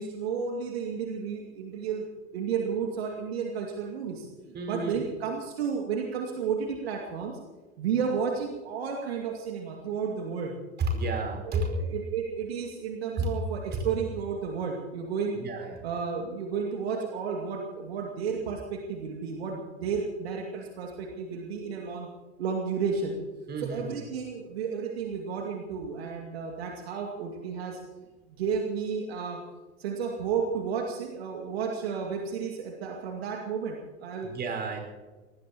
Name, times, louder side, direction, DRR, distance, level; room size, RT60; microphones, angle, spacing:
voice 1, 0.0-2.1 2.3-7.4 7.8-10.6 11.4-15.4 15.8-22.1 22.4-23.2 23.6-27.8 28.3-29.4 29.8-34.3, right 6 dB, 65° right, 1 dB, 2.4 m, -32 dB
voice 2, 4.5-5.1 10.8-11.7 13.1-13.3 15.3-15.8 23.5-24.0 34.2-34.8, right 2 dB, 30° right, 2 dB, 5.2 m, -31 dB
25.0 x 19.0 x 3.0 m, 1.3 s
figure-of-eight pair, 80°, 34 cm